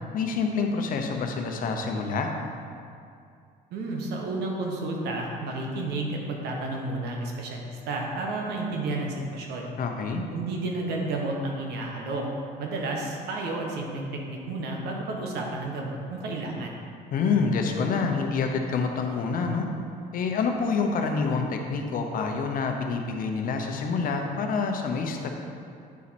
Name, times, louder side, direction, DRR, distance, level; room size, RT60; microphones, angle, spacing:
voice 1, 0.1-2.3 9.8-10.2 17.1-19.7 20.1-25.3, left 4 dB, 55° left, 3 dB, 0.8 m, -27 dB
voice 2, 3.7-9.7 10.3-12.3 12.6-16.8, right 2 dB, 75° right, 0 dB, 1.2 m, -31 dB
8.5 x 4.3 x 4.2 m, 2.4 s
cardioid pair, 110°, 17 cm